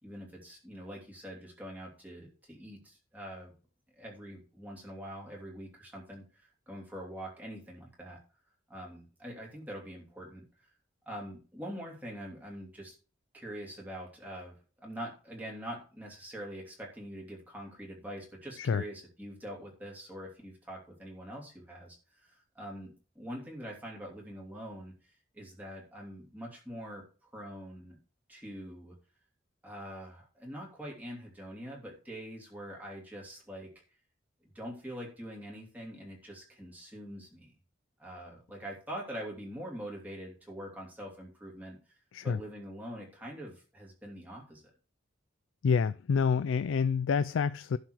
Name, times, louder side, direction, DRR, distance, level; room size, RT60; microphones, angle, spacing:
voice 1, 0.0-3.5 3.9-8.2 8.7-10.5 11.1-12.9 13.3-14.6 14.8-24.9 25.3-27.0 27.3-28.0 28.3-28.9 29.6-33.7 34.5-37.5 38.0-41.8 42.2-44.7, equal, 10° right, 3.0 m, -44 dB
voice 2, 45.6-47.8, left 6 dB, 85° left, 0.4 m, -28 dB
11.5 x 4.5 x 6.3 m
head